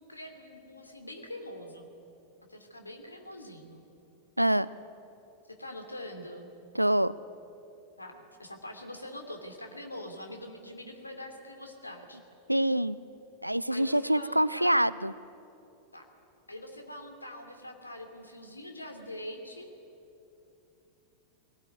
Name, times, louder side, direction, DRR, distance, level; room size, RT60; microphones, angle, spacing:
voice 1, 0.0-1.9 2.5-3.8 5.5-6.5 8.0-12.2 13.7-14.7 15.9-16.1 16.5-19.7, left 1 dB, 85° left, 4 dB, 2.7 m, -44 dB
voice 2, 6.7-7.1 12.5-13.0 13.4-15.1, right 1 dB, 90° right, 18 dB, 0.5 m, -25 dB
21.5 x 18.0 x 9.6 m, 2.8 s
figure-of-eight pair, 90°, 0 cm